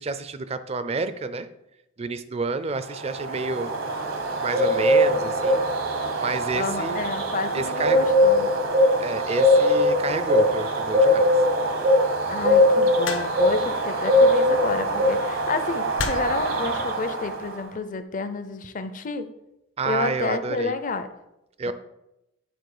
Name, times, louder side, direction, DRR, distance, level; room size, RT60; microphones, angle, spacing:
voice 1, 0.0-1.5 2.0-3.7 4.4-5.6 6.2-7.0 7.5-8.1 9.0-11.3 19.8-20.7 21.6-21.7, right 4 dB, 30° right, 12 dB, 0.4 m, -29 dB
Bird, 2.9-17.6, left 1 dB, 75° right, 1.2 m, -21 dB
voice 2, 6.5-8.6 12.3-19.3 19.8-21.1 21.7-21.8, left 3 dB, 40° left, 10 dB, 0.5 m, -30 dB
sound 1, 13.1-13.6 14.8-15.0 16.0-16.5 17.4-17.7, left 4 dB, 75° left, 0.8 m, -31 dB
9.2 x 4.0 x 4.9 m, 0.89 s
head